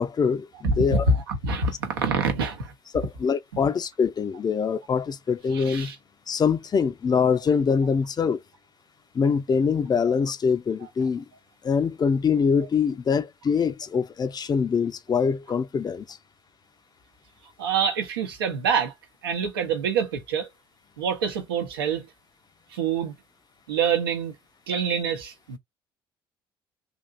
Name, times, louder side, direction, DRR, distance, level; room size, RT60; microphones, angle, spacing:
voice 1, 0.0-1.0 2.9-5.9 6.3-8.4 9.1-11.2 11.6-16.2, left 6 dB, 35° left, 0.5 m, -24 dB
voice 2, 0.6-2.7 5.5-6.0 17.6-18.9 19.2-20.5 21.0-22.1 22.7-23.1 23.7-24.3 24.7-25.6, right 5 dB, 80° right, 0.8 m, -26 dB
3.4 x 2.7 x 2.5 m
figure-of-eight pair, 50°, 12 cm